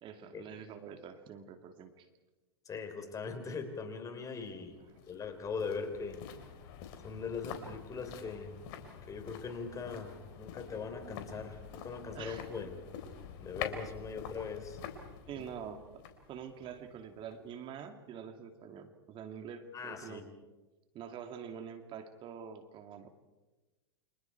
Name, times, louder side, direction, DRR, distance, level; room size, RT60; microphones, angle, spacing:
voice 1, 0.0-2.1 12.0-12.5 15.3-16.0 16.3-20.3 20.9-23.1, right 7 dB, 40° right, 6 dB, 2.4 m, -46 dB
voice 2, 2.6-4.8 5.1-6.2 7.0-8.5 9.0-12.7 13.4-14.8 15.3-15.5 19.7-20.2, left 5 dB, 25° left, 7 dB, 4.4 m, -40 dB
sound 1, 4.4-17.6 17.9-18.0, left 8 dB, 60° left, 4.2 m, -47 dB
30.0 x 26.5 x 4.7 m, 1.1 s
hypercardioid pair, 105°, 13 cm